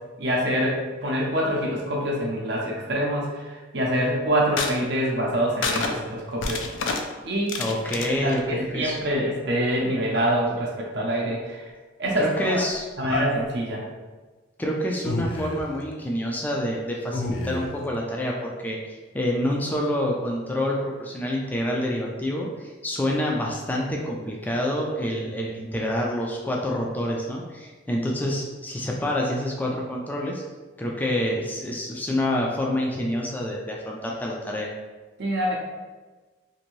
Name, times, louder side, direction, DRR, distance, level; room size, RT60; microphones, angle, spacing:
voice 1, 0.2-6.7 7.2-7.6 8.0-11.7 12.0-12.6 13.0-13.9 35.2-35.6, equal, 60° right, -2 dB, 0.6 m, -25 dB
sound 1, 4.3-4.7 5.6-5.9 6.4-7.0 7.5-8.4 10.1-10.3 13.1-13.4 15.0-15.8 17.1-17.9, left 3 dB, 80° left, 0.4 m, -29 dB
voice 2, 7.6-9.0 12.2-13.1 14.6-30.4 30.8-34.7, left 1 dB, 10° left, -2 dB, 0.3 m, -27 dB
2.6 x 2.6 x 3.0 m, 1.3 s
head